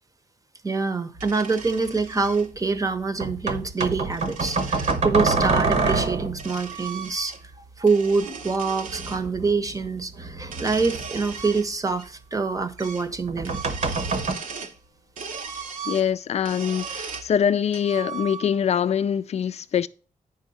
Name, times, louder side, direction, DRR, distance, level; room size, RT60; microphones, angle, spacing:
voice 1, 0.6-13.6, right 4 dB, 25° right, 0.8 m, -25 dB
sound 1, 1.1-2.5 3.7-5.0 5.9-7.6 7.8-9.2 10.4-12.1 12.3-12.4 12.8-13.1 13.4-14.8 15.2-17.3 17.7-18.7, right 5 dB, 85° right, 1.1 m, -37 dB
sound 2, 1.8-1.9 3.2-6.5 8.9-11.6 13.1-14.3, right 3 dB, 60° right, 1.1 m, -26 dB
voice 2, 15.9-19.9, left 8 dB, 55° left, 0.4 m, -24 dB
8.9 x 5.5 x 4.1 m
cardioid pair, 100°, 13 cm